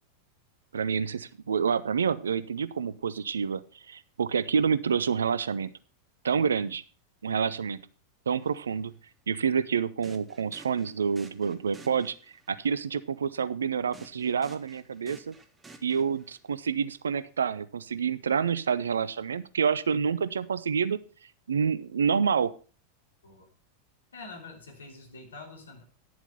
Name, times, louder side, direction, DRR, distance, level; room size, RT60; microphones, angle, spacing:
voice 1, 0.7-3.6 3.9-5.7 6.2-6.8 7.2-7.8 8.3-8.9 9.3-12.1 12.5-15.4 15.8-21.0 21.5-22.5, right 6 dB, 70° right, 16 dB, 0.6 m, -28 dB
sound 1, 8.4-8.6 10.0-12.5 13.9-16.5, right 3 dB, 15° right, 1.3 m, -53 dB
voice 2, 24.1-25.8, left 3 dB, 70° left, 2 dB, 3.1 m, -45 dB
10.5 x 7.2 x 5.3 m, 0.38 s
figure-of-eight pair, 90°, 0 cm